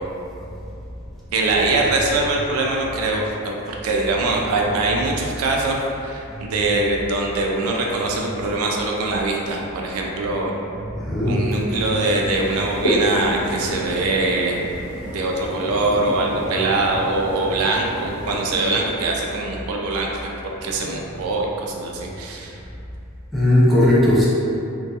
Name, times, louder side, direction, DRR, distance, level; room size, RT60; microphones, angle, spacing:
voice 1, 1.3-10.5 11.2-14.7 15.0-22.6, right 2 dB, 75° right, -1 dB, 0.3 m, -23 dB
voice 2, 11.0-11.5 11.8-12.0 23.3-24.3, left 1 dB, ahead, -9 dB, 0.4 m, -17 dB
sound 1, 12.1-18.9, equal, 85° left, 0.5 m, -30 dB
2.7 x 2.2 x 2.3 m, 2.7 s
head